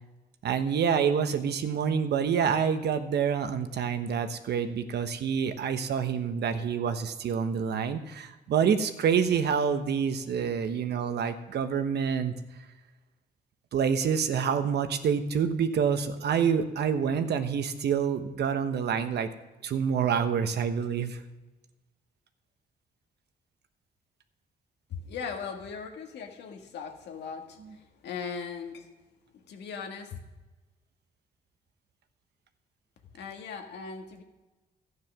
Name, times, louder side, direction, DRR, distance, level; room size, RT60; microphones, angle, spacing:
voice 1, 0.4-12.3 13.7-19.3 19.6-21.2, right 7 dB, 75° right, 9 dB, 1.1 m, -27 dB
voice 2, 24.9-28.9 29.5-30.2 33.1-34.2, left 6 dB, 90° left, 3 dB, 1.7 m, -39 dB
13.0 x 9.7 x 6.1 m, 1.1 s
cardioid pair, 80°, 17 cm